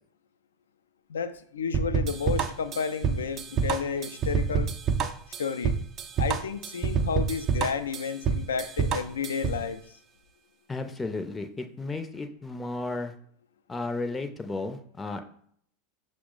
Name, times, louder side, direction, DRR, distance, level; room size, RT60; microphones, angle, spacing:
voice 1, 1.1-4.7 5.4-5.8 6.2-9.8, left 6 dB, 80° left, 11 dB, 0.3 m, -31 dB
sound 1, 1.7-9.6, right 6 dB, 40° right, 0.4 m, -27 dB
voice 2, 10.7-13.1 13.7-15.2, left 3 dB, 15° left, 7 dB, 0.5 m, -33 dB
5.9 x 2.0 x 3.6 m, 0.62 s
hypercardioid pair, 90°, 0 cm